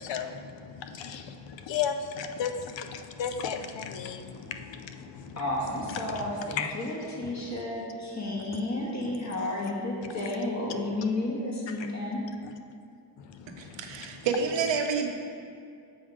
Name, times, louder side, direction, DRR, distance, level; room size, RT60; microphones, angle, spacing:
voice 1, 0.0-5.4 5.9-6.8 7.2-7.5 8.5-8.6 12.4-12.5 13.2-14.1, left 7 dB, 85° left, 7 dB, 0.5 m, -35 dB
voice 2, 5.4-12.2, left 1 dB, 40° left, -4 dB, 1.5 m, -32 dB
voice 3, 13.6-15.1, right 5 dB, 90° right, 4 dB, 0.7 m, -28 dB
7.1 x 3.6 x 4.9 m, 2.4 s
cardioid pair, 50°, 43 cm